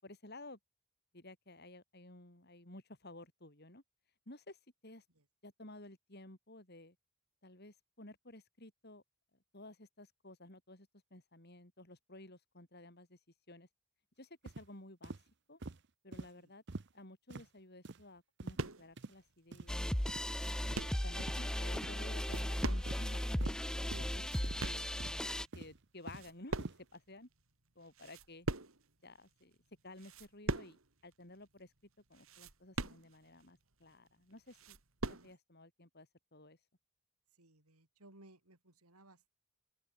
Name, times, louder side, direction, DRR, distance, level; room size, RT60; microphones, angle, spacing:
voice 1, 0.0-0.6 1.1-3.8 4.3-5.0 5.4-7.0 7.4-9.0 9.5-13.2 13.5-13.7 14.2-15.2 15.5-15.6 16.0-16.6 16.9-19.8 20.4-20.7 21.0-27.3 27.7-28.5 29.0-29.6 29.8-31.7 32.1-34.8 35.1-36.6, left 2 dB, 45° left, 4.5 m, -54 dB
sound 1, 14.5-14.7 15.0-15.2 15.6-15.8 16.1-16.3 16.7-16.9 17.3-17.5 17.9-18.0 18.4-18.6 19.0-19.1 19.5-19.7 20.1-20.2 20.6-20.8 21.2-21.4 21.8-22.0 22.3-22.5 22.9-23.0 23.4-23.6 23.9-24.1 24.4-24.6 25.0-25.2 25.5-26.3 26.6-26.8, right 3 dB, 50° right, 0.8 m, -46 dB
sound 2, 18.6-19.0 19.5-19.6 20.0-21.1 22.1-23.1 23.4-23.5 24.0-24.9 25.5-25.8 26.0-27.1 27.4-27.5 27.9-28.9 29.4-29.6 30.0-30.9 31.1-31.2 31.6-31.7 32.1-33.4 33.9-34.0 34.3-35.3, right 2 dB, 70° right, 2.8 m, -41 dB
sound 3, 19.7-25.5, equal, 5° left, 0.5 m, -36 dB
voice 2, 23.9-24.3 35.1-35.3 37.4-39.3, right 2 dB, 90° right, 4.9 m, -59 dB
open air
head